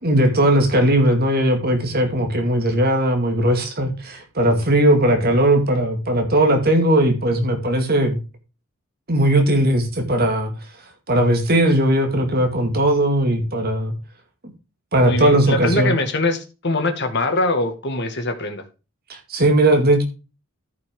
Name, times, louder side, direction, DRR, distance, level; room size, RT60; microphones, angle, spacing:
voice 1, 0.0-8.2 9.1-10.5 11.1-13.9 14.9-16.0 19.1-20.0, right 1 dB, 45° right, 4 dB, 2.3 m, -18 dB
voice 2, 15.0-18.6, left 2 dB, 55° left, 6 dB, 2.1 m, -22 dB
13.5 x 6.0 x 3.8 m, 0.31 s
head